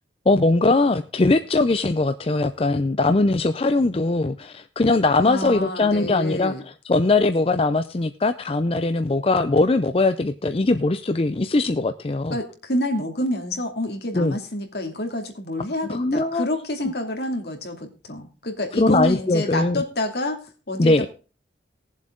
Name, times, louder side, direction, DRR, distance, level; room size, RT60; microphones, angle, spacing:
voice 1, 0.3-6.5 6.8-12.4 14.1-14.4 15.9-16.4 18.8-19.8 20.8-21.1, left 2 dB, 30° left, 9 dB, 0.5 m, -20 dB
voice 2, 5.2-6.6 12.3-20.4 20.7-21.1, left 1 dB, 65° left, 4 dB, 2.6 m, -28 dB
18.5 x 7.4 x 3.8 m, 0.35 s
head